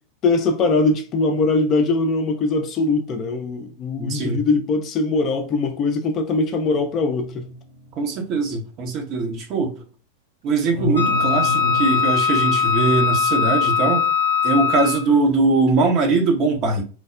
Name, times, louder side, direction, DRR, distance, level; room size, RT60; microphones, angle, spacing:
voice 1, 0.2-7.5, left 3 dB, 35° left, 0.4 m, -21 dB
voice 2, 4.0-4.4 8.0-9.8 10.4-14.1 14.4-16.8, right 3 dB, 35° right, 0.7 m, -21 dB
sound 1, 6.7-8.5 10.7-12.1, left 1 dB, 70° right, 0.9 m, -30 dB
Wind instrument woodwind instrument, 10.9-15.2, left 6 dB, 80° left, 0.6 m, -20 dB
3.2 x 2.0 x 2.4 m
figure-of-eight pair, 90°, 0 cm